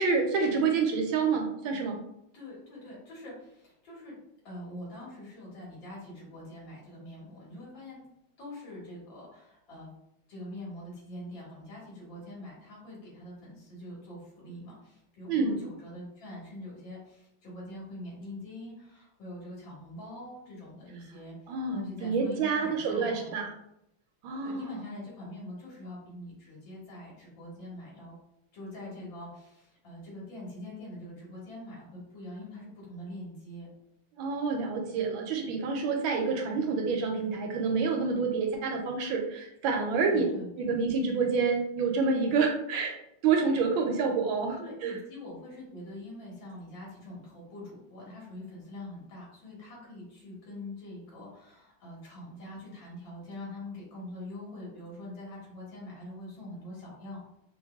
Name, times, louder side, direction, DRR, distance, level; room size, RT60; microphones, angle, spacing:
voice 1, 0.0-2.0 15.3-15.5 21.5-23.5 24.2-24.9 34.2-40.2 40.6-43.0 43.2-44.9, right 4 dB, 75° right, 3 dB, 1.3 m, -28 dB
voice 2, 2.3-4.2 4.4-8.0 8.4-9.9 10.3-23.3 24.4-28.2 28.5-33.7 39.9-40.8 44.6-57.2, left 1 dB, 65° left, -5 dB, 2.2 m, -44 dB
5.3 x 2.5 x 2.3 m, 0.80 s
omnidirectional pair, 2.3 m